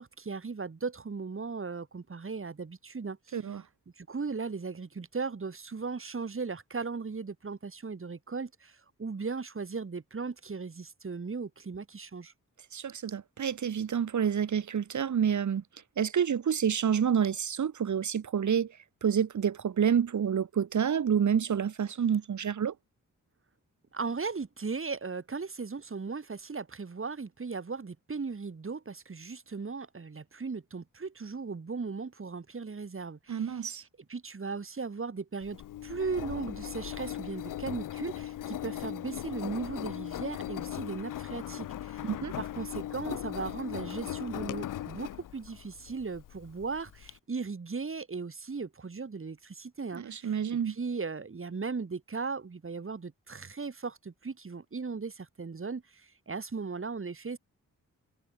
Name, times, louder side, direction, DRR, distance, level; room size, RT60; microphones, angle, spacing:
voice 1, 0.0-3.6 4.0-12.3 23.9-57.4, right 4 dB, 40° right, 3.7 m, -37 dB
voice 2, 12.7-15.6 16.0-18.7 19.0-22.7 33.3-33.8 42.0-42.3 49.9-50.8, right 8 dB, 65° right, 1.9 m, -28 dB
Engine, 35.4-47.1, left 12 dB, 80° left, 0.9 m, -39 dB
cardioid pair, 55°, 32 cm